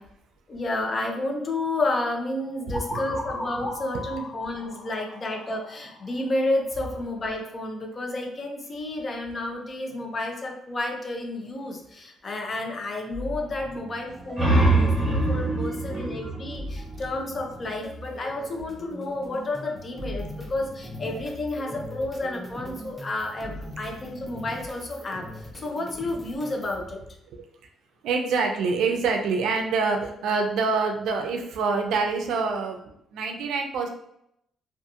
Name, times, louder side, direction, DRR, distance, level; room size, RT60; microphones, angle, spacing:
voice 1, 0.5-27.0, left 2 dB, 35° left, 2 dB, 0.6 m, -31 dB
sound 1, 2.7-6.5, left 2 dB, 65° left, 0.9 m, -36 dB
voice 2, 2.7-3.2 3.9-4.0 27.3-27.4 28.0-32.8 33.1-33.9, right 4 dB, 80° right, 3 dB, 0.4 m, -26 dB
sound 2, 13.1-26.8, equal, 5° right, 0.6 m, -40 dB
sound 3, 14.1-17.5, right 2 dB, 25° right, 1.2 m, -24 dB
2.7 x 2.4 x 2.4 m, 0.76 s
cardioid pair, 90°, 0 cm